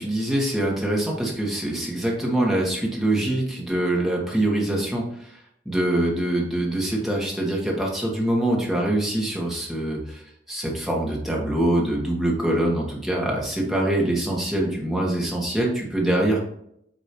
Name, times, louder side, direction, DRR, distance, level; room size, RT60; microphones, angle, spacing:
voice 1, 0.0-5.3 5.6-10.2 10.5-16.5, right 1 dB, ahead, -3 dB, 1.5 m, -24 dB
8.4 x 3.0 x 4.4 m, 0.72 s
head